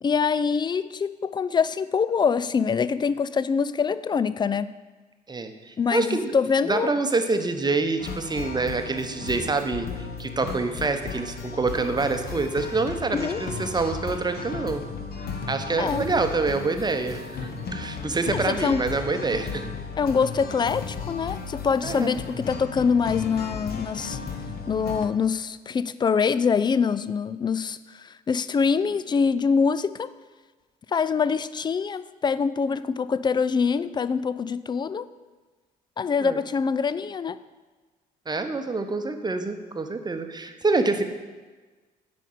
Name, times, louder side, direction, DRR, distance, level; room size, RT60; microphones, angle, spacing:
voice 1, 0.0-4.7 5.8-6.9 7.3-7.4 13.1-13.4 15.8-16.1 18.3-18.8 20.0-24.2 24.7-30.1 30.9-35.1 36.0-37.4, left 5 dB, 20° left, 15 dB, 0.4 m, -24 dB
voice 2, 5.3-6.4 6.6-14.8 15.2-19.7 21.8-22.2 36.2-36.4 38.3-41.0, right 3 dB, 20° right, 7 dB, 0.9 m, -26 dB
sound 1, 8.0-25.1, left 5 dB, 50° left, 1.0 m, -35 dB
9.1 x 5.2 x 6.5 m, 1.3 s
figure-of-eight pair, 50°, 21 cm